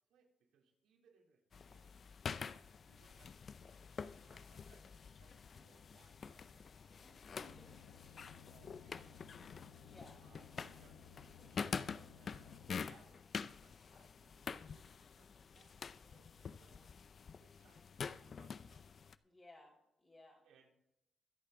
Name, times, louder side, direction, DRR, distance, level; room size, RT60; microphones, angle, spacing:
voice 1, 0.1-2.1 2.9-7.7 8.1-9.5 10.2-17.1 17.4-19.0 20.4-20.7, right 6 dB, 85° right, -1 dB, 3.6 m, -71 dB
sound 1, 1.5-19.2, left 6 dB, 50° left, 0.6 m, -47 dB
voice 2, 7.0-7.5 9.8-10.2 19.2-20.4, left 1 dB, 25° left, -5 dB, 4.4 m, -60 dB
sound 2, 7.4-12.7, left 7 dB, 90° left, 1.1 m, -59 dB
25.0 x 8.5 x 3.9 m, 0.84 s
cardioid pair, 95°, 0 cm